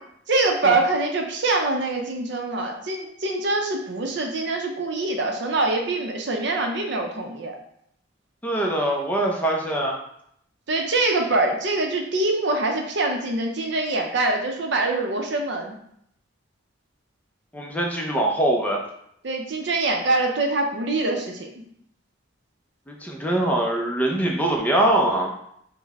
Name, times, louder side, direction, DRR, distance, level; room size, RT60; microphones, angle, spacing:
voice 1, 0.3-7.6 10.7-15.8 19.2-21.5, right 2 dB, 60° right, 3 dB, 0.6 m, -24 dB
voice 2, 8.4-10.0 17.5-18.8 22.9-25.3, right 1 dB, 10° left, 0 dB, 0.5 m, -23 dB
5.3 x 2.1 x 3.5 m, 0.72 s
head